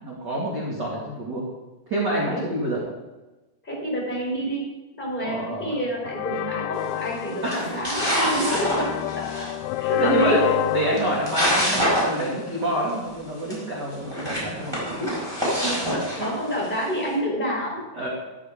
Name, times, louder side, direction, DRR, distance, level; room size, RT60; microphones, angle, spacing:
voice 1, 0.0-1.5 1.9-2.8 5.2-5.8 7.4-7.7 8.2-8.6 9.9-10.4 10.7-15.1 15.7-16.0 17.9-18.1, right 1 dB, 30° right, -5 dB, 2.4 m, -27 dB
voice 2, 3.6-8.8 9.4-9.5 9.8-10.6 15.6-15.8 16.2-17.8, right 1 dB, 10° left, -3 dB, 5.5 m, -28 dB
sound 1, 6.0-12.8, left 15 dB, 85° left, 2.4 m, -29 dB
sound 2, 6.8-7.1 7.5-9.5 10.6-10.7 10.9-12.3 12.5-12.6 12.9-13.0 13.5-13.6 14.0-16.8, equal, 5° right, 4.6 m, -26 dB
13.5 x 13.0 x 3.7 m, 1.1 s
omnidirectional pair, 4.4 m